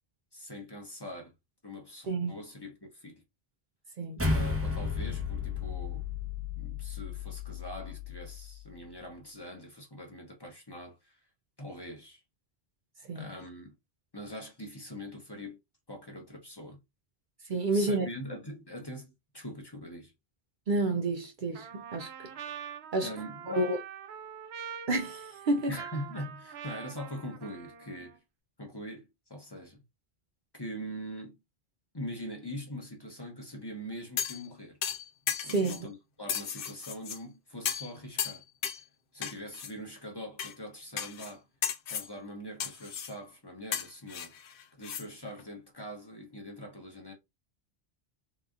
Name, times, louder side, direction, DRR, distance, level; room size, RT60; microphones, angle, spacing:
voice 1, 0.3-1.3 1.6-3.2 4.3-6.0 6.6-11.2 11.6-12.2 13.1-13.7 14.1-15.6 15.9-16.8 17.7-20.1 23.0-23.7 25.7-28.2 28.6-29.8 30.5-31.4 31.9-34.8 35.4-38.4 39.1-41.4 41.9-47.1, equal, 25° left, 0.9 m, -43 dB
sound 1, 4.2-8.7, left 4 dB, 15° right, 0.8 m, -34 dB
voice 2, 17.5-18.1 20.7-22.1 22.9-23.1 23.5-23.8 24.9-25.7 35.4-35.9, right 2 dB, 55° right, 0.7 m, -29 dB
Trumpet, 21.5-28.2, right 8 dB, 90° right, 0.8 m, -44 dB
sound 2, 34.2-34.5 34.8-35.8 36.3-37.2 37.7-37.9 38.2-38.8 39.2-39.7 40.4-40.5 41.0-41.3 41.6-42.1 42.6-43.1 43.7-45.0 45.4-45.5, left 8 dB, 65° left, 0.7 m, -35 dB
3.7 x 2.9 x 2.4 m
omnidirectional pair, 1.1 m